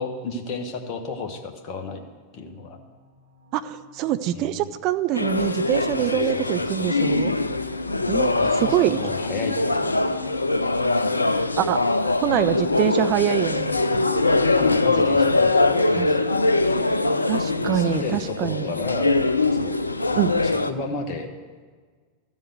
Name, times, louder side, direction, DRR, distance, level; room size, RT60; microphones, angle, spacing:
voice 1, 0.0-2.0 2.3-2.8 4.3-4.7 6.0-6.9 8.4-10.1 14.6-15.6 15.9-16.2 17.6-19.1 19.5-19.8 20.1-21.3, left 3 dB, 40° left, 4 dB, 1.3 m, -33 dB
sound 1, 1.6-16.3, right 2 dB, 80° right, 2.6 m, -50 dB
voice 2, 3.5-7.3 8.1-8.3 8.6-9.0 11.6-11.8 12.2-13.7 16.0-16.1 17.3-18.7 20.2-20.3, right 12 dB, 40° right, 12 dB, 0.5 m, -24 dB
sound 2, 5.1-20.7, left 2 dB, 80° left, 0.5 m, -22 dB
13.5 x 7.3 x 7.9 m, 1.5 s
figure-of-eight pair, 90°, 0 cm